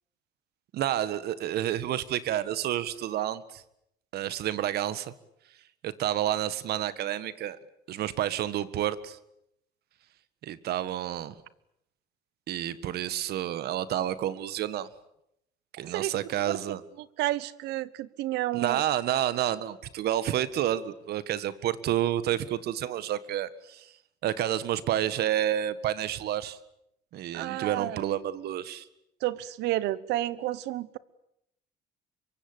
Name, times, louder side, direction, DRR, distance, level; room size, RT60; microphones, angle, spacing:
voice 1, 0.7-3.6 4.1-5.1 5.8-7.6 7.9-9.2 10.4-11.3 12.5-14.9 15.8-16.8 18.5-23.9 24.2-26.6 27.1-28.9, right 11 dB, 70° right, 15 dB, 1.7 m, -29 dB
voice 2, 15.8-18.8 27.3-28.0 29.2-31.0, right 15 dB, 85° right, 19 dB, 1.2 m, -31 dB
25.5 x 23.5 x 8.8 m, 0.78 s
cardioid pair, 110°, 17 cm